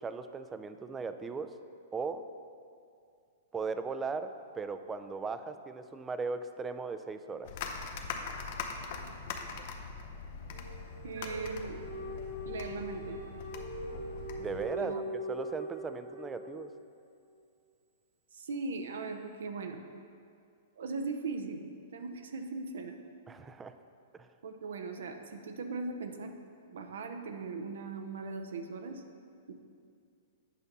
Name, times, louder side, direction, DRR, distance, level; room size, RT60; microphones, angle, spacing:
voice 1, 0.0-1.5 1.9-2.3 3.5-7.5 14.4-15.0 15.3-16.7 23.3-23.7 24.1-24.3, right 4 dB, 15° right, 10 dB, 0.3 m, -38 dB
sound 1, 7.4-14.7, left 5 dB, 55° left, 0.7 m, -42 dB
sound 2, 10.5-16.9, right 1 dB, 55° right, 1.1 m, -41 dB
voice 2, 11.0-11.8 12.4-13.2 14.8-15.0 18.3-19.8 20.8-21.6 21.9-23.0 24.4-26.3 26.7-29.0 29.5-29.6, right 4 dB, 80° right, 6 dB, 0.6 m, -39 dB
8.3 x 5.2 x 4.0 m, 2.3 s
hypercardioid pair, 140°, 0 cm